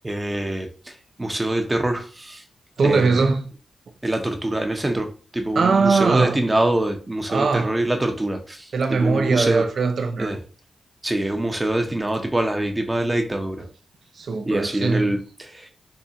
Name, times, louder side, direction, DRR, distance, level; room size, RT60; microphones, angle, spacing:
voice 1, 0.0-2.4 2.8-3.2 4.0-9.6 10.2-10.4 11.0-13.6 14.5-15.7, right 1 dB, 20° right, 0.8 m, -25 dB
voice 2, 2.8-3.5 5.5-6.4 7.3-7.8 8.7-10.4 14.1-15.2, right 4 dB, 70° right, 0.6 m, -21 dB
3.6 x 2.1 x 4.2 m
cardioid pair, 60°, 0 cm